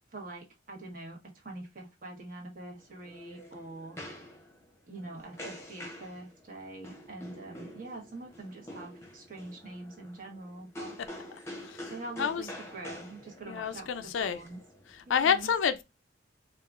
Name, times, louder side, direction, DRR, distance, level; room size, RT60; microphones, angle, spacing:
voice 1, 0.1-4.0 4.9-10.9 11.9-14.6 15.1-15.5, right 2 dB, 45° right, 1.1 m, -44 dB
sound 1, 2.8-15.3, left 1 dB, 15° left, 0.8 m, -47 dB
voice 2, 13.4-14.4 15.1-15.8, left 7 dB, 80° left, 0.4 m, -28 dB
4.6 x 2.4 x 2.4 m
head